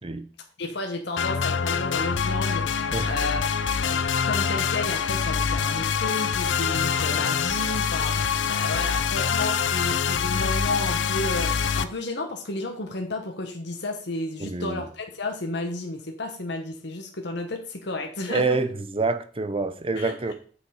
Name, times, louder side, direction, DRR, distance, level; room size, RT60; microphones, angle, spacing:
voice 1, 0.6-3.4 3.8-18.6 20.0-20.3, left 2 dB, 65° left, 1.2 m, -32 dB
sound 1, 1.2-11.8, left 6 dB, 90° left, 0.6 m, -25 dB
voice 2, 14.4-14.8 18.3-20.3, right 3 dB, 30° right, 0.8 m, -27 dB
8.1 x 6.5 x 4.9 m
head